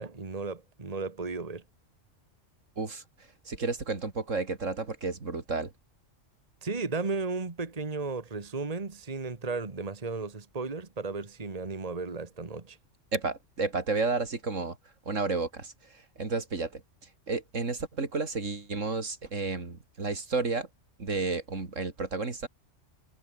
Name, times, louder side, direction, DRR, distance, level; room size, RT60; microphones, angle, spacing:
voice 1, 0.0-1.6 6.6-12.8, right 3 dB, 30° right, 1.7 m, -34 dB
voice 2, 3.4-5.7 13.1-14.8 15.1-15.7 16.2-16.8 17.3-20.7 21.0-22.5, right 3 dB, 75° right, 3.1 m, -31 dB
omnidirectional pair, 1.3 m